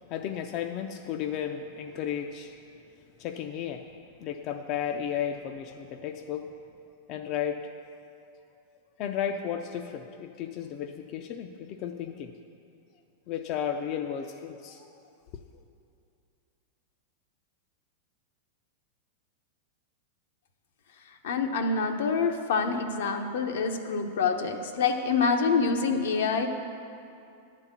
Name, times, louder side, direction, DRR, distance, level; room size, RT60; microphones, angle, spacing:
voice 1, 0.1-2.6 3.2-3.9 4.2-6.5 7.1-7.7 9.0-12.3 13.3-15.0, left 9 dB, 40° left, 5 dB, 0.4 m, -34 dB
voice 2, 21.2-26.5, left 5 dB, 75° left, 4 dB, 0.8 m, -26 dB
10.5 x 4.0 x 7.3 m, 2.6 s
supercardioid pair, 140°, 0 cm